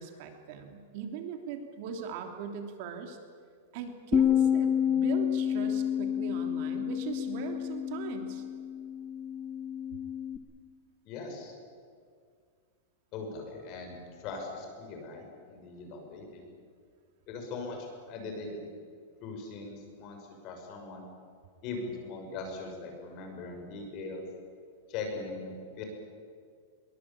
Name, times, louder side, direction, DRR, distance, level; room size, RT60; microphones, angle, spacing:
voice 1, 0.0-3.2 3.7-8.4, right 6 dB, 45° right, 5 dB, 3.1 m, -40 dB
Bass guitar, 4.1-10.4, left 9 dB, 15° left, 1.2 m, -29 dB
voice 2, 11.0-11.5 13.1-16.5 17.3-18.6 19.2-21.1 21.6-24.2 24.9-25.8, left 3 dB, 35° left, 3 dB, 6.3 m, -40 dB
23.0 x 22.5 x 8.7 m, 2.1 s
supercardioid pair, 160°, 0 cm